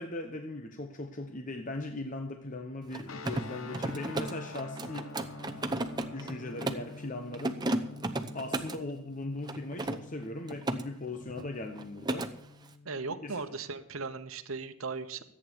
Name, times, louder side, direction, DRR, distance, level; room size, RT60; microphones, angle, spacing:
voice 1, 0.0-5.1 6.1-7.6 8.3-12.3 13.2-13.4, left 2 dB, 35° left, 5 dB, 0.9 m, -39 dB
Mechanisms, 2.8-6.9 7.3-8.8 9.4-10.8 11.1-11.5 11.7-12.3, right 2 dB, 20° right, 0.7 m, -34 dB
sound 1, 3.1-13.4, left 3 dB, 75° left, 0.9 m, -47 dB
voice 2, 12.8-15.2, right 4 dB, 80° right, 10 dB, 1.0 m, -37 dB
14.0 x 8.7 x 7.0 m, 0.73 s
head